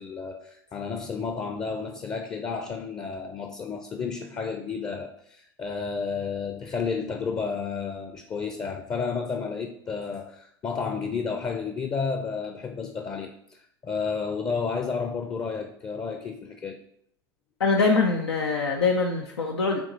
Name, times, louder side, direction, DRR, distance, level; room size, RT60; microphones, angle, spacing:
voice 1, 0.0-16.8, left 5 dB, 30° left, 0.6 m, -31 dB
voice 2, 17.6-19.8, left 4 dB, 85° left, 0.6 m, -23 dB
8.3 x 3.0 x 4.0 m
hypercardioid pair, 85°, 13 cm